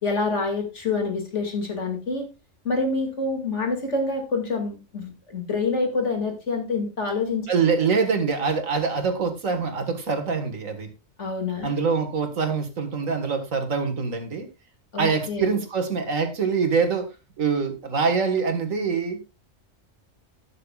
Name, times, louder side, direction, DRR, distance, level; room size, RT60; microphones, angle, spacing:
voice 1, 0.0-2.3 2.6-7.6 11.2-11.7 14.9-15.5, left 3 dB, 65° left, 3 dB, 2.7 m, -27 dB
voice 2, 7.5-10.9 11.6-14.5 15.0-17.1 17.4-19.2, right 5 dB, 85° right, 6 dB, 2.1 m, -24 dB
19.0 x 6.6 x 2.4 m, 0.27 s
omnidirectional pair, 1.3 m